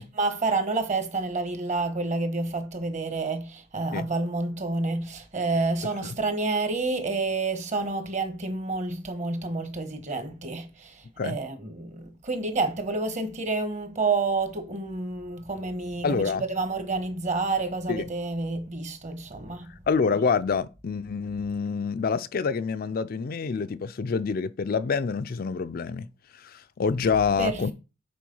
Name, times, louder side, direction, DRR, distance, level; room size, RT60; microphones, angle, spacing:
voice 1, 0.0-16.2 16.5-19.7 27.4-27.7, right 3 dB, 40° right, 1.3 m, -29 dB
voice 2, 16.0-16.4 17.9-18.0 19.9-26.1 26.3-27.7, left 5 dB, 50° left, 0.4 m, -27 dB
7.6 x 4.2 x 5.4 m
head